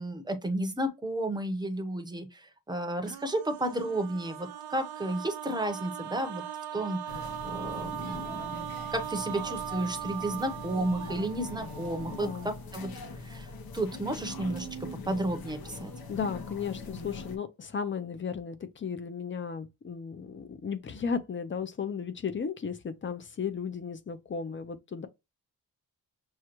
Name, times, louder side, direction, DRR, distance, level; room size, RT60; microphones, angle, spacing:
voice 1, 0.0-6.4 6.7-12.9 13.2-13.5 13.7-14.7 15.0-15.9, right 1 dB, 10° right, 0.7 m, -32 dB
sound 1, 3.1-12.7 13.9-14.0 14.2-15.0, right 11 dB, 85° right, 0.5 m, -40 dB
sound 2, 7.1-17.4, left 3 dB, 75° left, 0.9 m, -42 dB
voice 2, 12.1-12.5 16.1-25.1, left 6 dB, 35° left, 0.5 m, -35 dB
6.3 x 2.2 x 2.9 m
wide cardioid pair, 170°, 37 cm